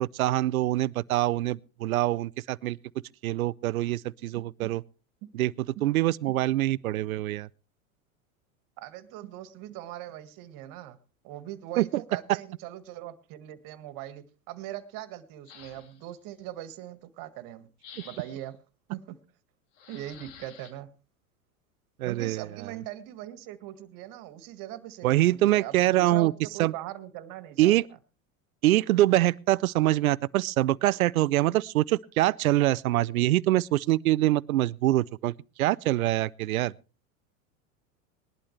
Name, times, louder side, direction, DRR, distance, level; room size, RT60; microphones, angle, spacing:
voice 1, 0.0-2.8 3.2-4.8 5.3-5.5 5.8-7.5 11.8-11.9 22.0-22.4 25.0-26.3 26.6-26.7 27.6-27.8 28.6-35.3 35.6-36.7, right 15 dB, 85° right, 0.6 m, -24 dB
voice 2, 8.8-11.0 11.2-17.7 18.0-18.6 18.9-19.2 19.9-20.9 22.0-27.8, right 13 dB, 50° right, 1.8 m, -41 dB
sound 1, 15.4-16.1 17.8-18.5 19.7-20.7, left 7 dB, 60° left, 2.3 m, -50 dB
20.0 x 11.5 x 3.2 m
hypercardioid pair, 95°, 41 cm